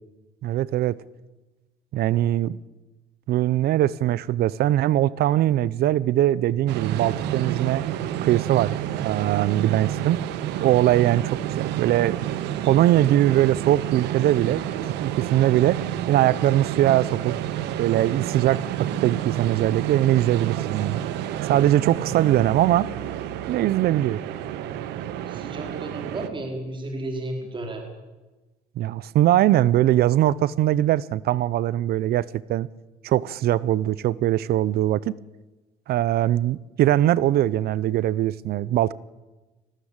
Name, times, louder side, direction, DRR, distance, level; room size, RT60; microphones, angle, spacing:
voice 1, 0.4-1.0 1.9-2.6 3.3-7.8 8.2-10.2 10.6-12.2 12.6-14.6 15.0-15.8 16.1-17.3 17.8-21.0 21.4-22.9 23.5-24.2 28.8-32.7 33.0-35.2 35.9-38.9, right 13 dB, 65° right, 0.6 m, -21 dB
sound 1, 6.7-26.3, right 11 dB, 90° right, 1.3 m, -30 dB
voice 2, 25.3-27.8, right 1 dB, 30° right, 4.7 m, -33 dB
20.0 x 16.5 x 8.9 m
cardioid pair, 110°, 17 cm